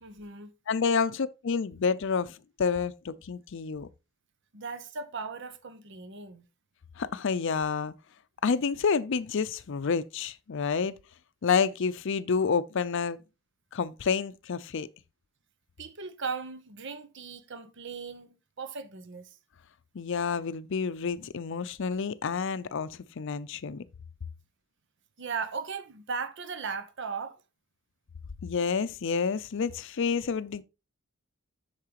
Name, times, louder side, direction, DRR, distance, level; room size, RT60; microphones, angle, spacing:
voice 1, 0.0-0.5 4.5-6.5 15.8-19.4 25.2-27.4, right 5 dB, 60° right, 0.9 m, -37 dB
voice 2, 0.7-3.9 7.0-7.9 8.4-10.9 11.4-13.2 13.7-14.9 19.9-23.8 28.4-30.6, left 5 dB, 65° left, 0.5 m, -29 dB
8.5 x 6.6 x 2.9 m
head